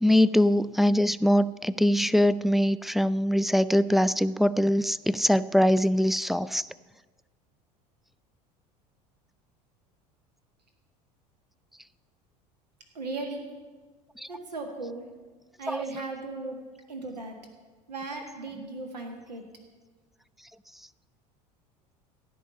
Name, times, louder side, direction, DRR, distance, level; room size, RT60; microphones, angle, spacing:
voice 1, 0.0-6.7 14.2-14.3 15.7-15.8, equal, ahead, 14 dB, 0.3 m, -23 dB
voice 2, 12.9-13.6 14.3-15.1 15.6-17.4 17.9-19.5, right 3 dB, 80° right, 3 dB, 1.7 m, -37 dB
16.0 x 5.5 x 8.3 m, 1.3 s
figure-of-eight pair, 70°, 21 cm